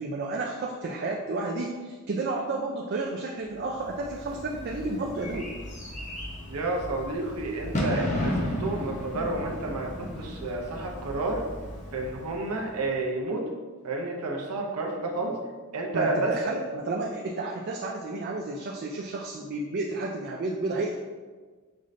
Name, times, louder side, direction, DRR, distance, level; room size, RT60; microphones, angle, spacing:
voice 1, 0.0-5.5 15.9-21.0, right 2 dB, 45° right, -1 dB, 0.4 m, -31 dB
Bird / Fireworks, 3.7-12.9, left 1 dB, 35° left, 0.7 m, -34 dB
voice 2, 6.5-11.4 11.9-13.4 13.8-15.4 15.7-16.6, right 2 dB, 85° right, 0 dB, 0.6 m, -30 dB
5.3 x 2.5 x 3.2 m, 1.4 s
head